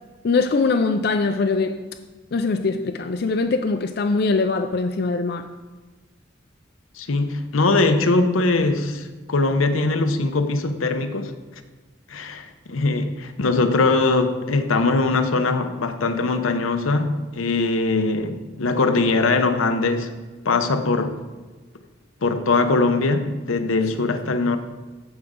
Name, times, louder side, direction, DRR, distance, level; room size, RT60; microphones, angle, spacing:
voice 1, 0.2-1.8 2.3-5.5, left 3 dB, 50° left, 0.4 m, -22 dB
voice 2, 7.0-11.3 12.1-20.1 20.4-21.2 22.2-24.6, left 3 dB, 90° left, 0.8 m, -21 dB
14.5 x 5.2 x 3.7 m
head